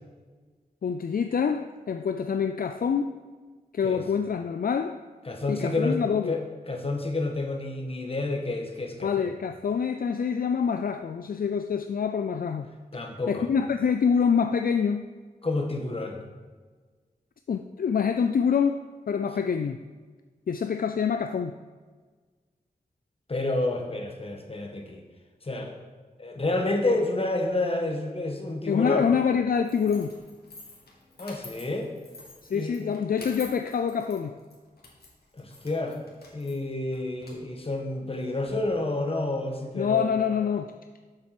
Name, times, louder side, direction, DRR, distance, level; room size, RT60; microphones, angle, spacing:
voice 1, 0.8-3.2 3.7-5.0 5.5-6.4 9.0-12.7 13.3-15.1 17.5-19.8 20.5-21.5 28.7-30.1 32.5-34.3 39.8-40.7, left 6 dB, 65° left, 8 dB, 0.4 m, -26 dB
voice 2, 5.2-9.3 12.9-13.5 15.4-16.2 23.3-25.0 25.4-25.8 26.2-29.1 31.2-31.9 32.5-32.9 35.3-36.0 36.3-40.1, left 2 dB, 35° left, 3 dB, 1.4 m, -29 dB
sound 1, 29.6-38.5, left 2 dB, 80° left, 2.0 m, -49 dB
7.7 x 7.2 x 5.9 m, 1.4 s
wide cardioid pair, 100°, 16 cm